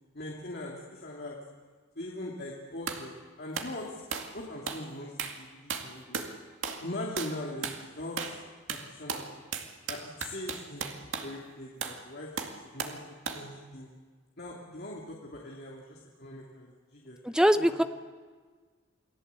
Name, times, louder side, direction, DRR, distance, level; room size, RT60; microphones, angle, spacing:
voice 1, 0.1-1.3 2.0-4.0 4.3-6.2 6.8-8.4 8.7-9.3 9.9-10.9 11.2-13.9 14.4-17.8, left 1 dB, 50° left, -2 dB, 2.9 m, -41 dB
sound 1, 2.9-3.1 3.5-3.7 4.1-4.3 4.7-4.9 5.2-5.4 5.7-6.3 6.6-6.9 7.2-7.4 7.6-7.8 8.2-8.4 8.7-11.3 11.8-12.0 12.4-13.0 13.3-13.5, right 5 dB, 70° right, 2.3 m, -36 dB
voice 2, 17.2-17.8, equal, 5° right, 10 dB, 0.8 m, -22 dB
29.0 x 19.0 x 8.4 m, 1.5 s
head